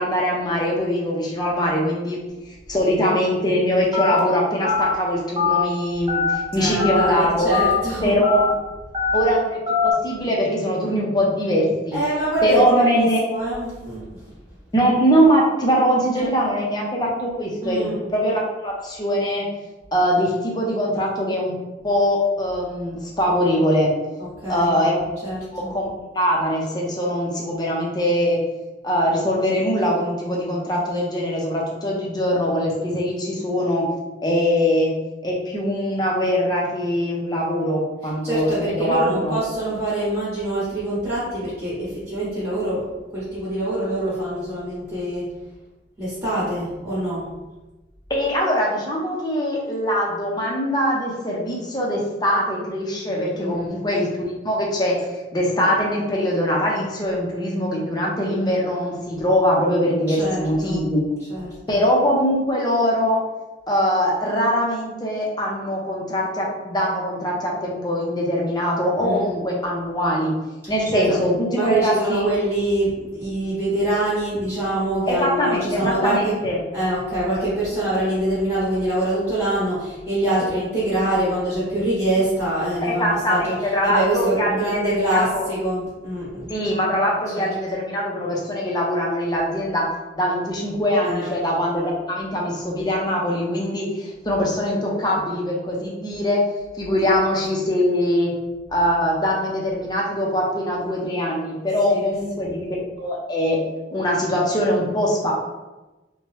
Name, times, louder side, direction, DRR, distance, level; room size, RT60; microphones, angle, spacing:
voice 1, 0.0-2.2 2.7-7.5 8.0-8.5 9.1-12.0 12.4-13.2 14.7-19.5 19.9-21.6 21.8-23.9 24.5-25.1 25.5-25.9 26.1-28.4 28.8-33.8 34.2-34.9 35.2-39.4 48.1-54.1 54.4-54.9 55.3-61.0 61.7-63.2 63.7-70.3 70.7-72.3 75.1-76.6 82.8-85.5 86.5-89.9 90.2-96.4 96.8-98.3 98.7-102.7 103.0-103.6 103.9-105.3, equal, 25° left, -3 dB, 0.6 m, -22 dB
Telephone, 3.9-4.2 4.6-4.9 5.4-5.6 6.1-6.3 6.8-7.1 7.5-7.8 8.2-8.5 8.9-9.2 9.7-9.9, left 5 dB, 30° right, 0.5 m, -21 dB
voice 2, 6.6-8.3 11.9-14.3 16.1-16.5 17.6-18.0 24.2-24.8 25.2-25.7 38.2-45.3 46.0-47.3 53.4-53.7 60.1-60.8 61.3-61.8 69.0-69.3 70.9-71.2 71.5-76.4 76.7-86.5 87.3-87.5 91.0-91.3 97.0-97.2 101.9-102.1 102.3-102.5, right 1 dB, 10° right, -10 dB, 1.0 m, -25 dB
2.8 x 2.2 x 3.1 m, 1.1 s
head